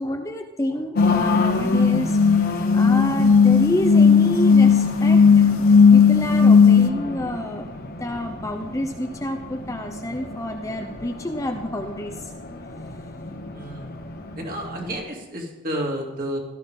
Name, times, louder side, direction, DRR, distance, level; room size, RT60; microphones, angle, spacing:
voice 1, 0.0-2.2 2.7-12.1, left 1 dB, 15° left, 4 dB, 0.7 m, -28 dB
sound 1, 1.0-6.9, left 5 dB, 85° left, 0.7 m, -15 dB
Race car auto racing, 1.0-15.0, left 2 dB, 45° left, 1.2 m, -32 dB
voice 2, 13.5-14.0 14.4-16.4, equal, 40° right, 0 dB, 2.6 m, -31 dB
16.0 x 13.5 x 3.7 m, 1.0 s
head